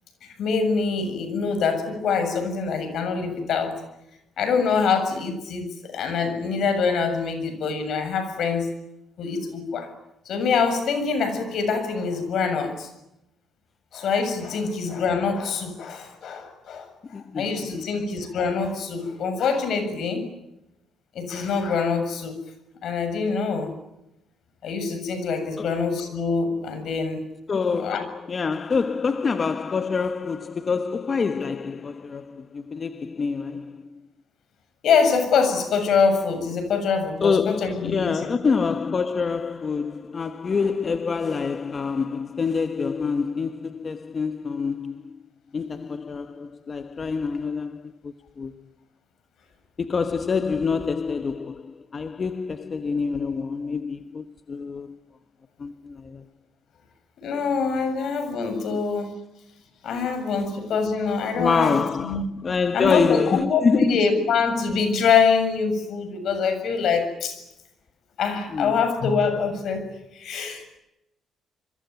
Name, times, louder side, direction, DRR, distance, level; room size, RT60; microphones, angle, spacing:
voice 1, 0.2-3.8 4.4-8.7 9.2-9.9 10.3-12.9 13.9-16.9 17.1-20.3 21.1-22.4 22.8-23.7 24.6-27.2 27.7-28.0 34.8-38.3 57.2-59.2 59.8-62.2 62.7-67.4 68.2-70.6, left 5 dB, 70° left, 7.2 m, -24 dB
voice 2, 17.1-17.9 25.6-25.8 27.5-34.0 37.2-45.2 45.5-48.5 49.8-55.0 55.6-56.2 58.7-58.9 61.4-64.2 68.5-68.7, left 5 dB, 40° left, 1.2 m, -26 dB
27.0 x 23.0 x 9.4 m
cardioid pair, 90°, 0 cm